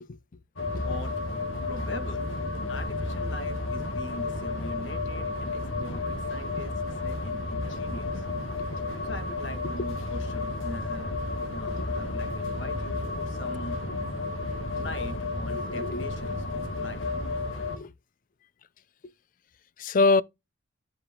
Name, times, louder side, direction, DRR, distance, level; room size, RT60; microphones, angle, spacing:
sound 1, 0.6-17.8, left 2 dB, 80° left, 1.9 m, -32 dB
voice 1, 0.8-1.1 1.7-2.2 2.7-6.7 7.0-8.2 9.0-11.1 11.5-13.8 14.7-17.0, left 1 dB, 65° left, 1.8 m, -42 dB
voice 2, 15.5-16.1 17.7-17.9 19.0-19.1 19.8-20.2, left 3 dB, 45° left, 0.4 m, -26 dB
10.0 x 5.0 x 3.7 m
head